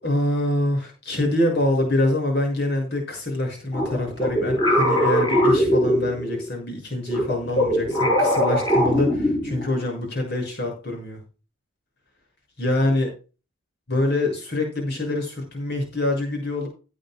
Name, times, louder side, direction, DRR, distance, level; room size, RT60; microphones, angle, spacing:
voice 1, 0.0-11.2 12.6-13.1 13.9-16.7, left 1 dB, 50° left, 2 dB, 6.6 m, -25 dB
sound 1, 3.7-6.5 7.1-9.8, equal, 20° left, 5.7 m, -21 dB
17.0 x 9.9 x 2.3 m, 0.34 s
head